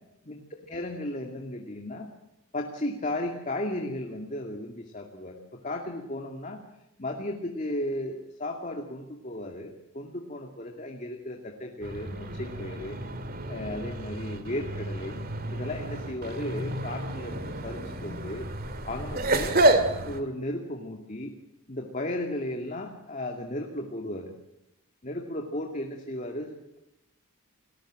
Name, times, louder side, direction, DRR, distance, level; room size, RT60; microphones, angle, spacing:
voice 1, 0.7-2.1 2.5-6.6 7.0-13.0 13.5-15.2 15.5-18.5 18.9-19.6 20.0-21.3 21.7-24.3 25.0-26.8, left 1 dB, 35° left, 2 dB, 2.4 m, -35 dB
sound 1, 11.8-20.2, right 1 dB, 40° right, 2.2 m, -29 dB
30.0 x 19.5 x 7.7 m, 0.86 s
head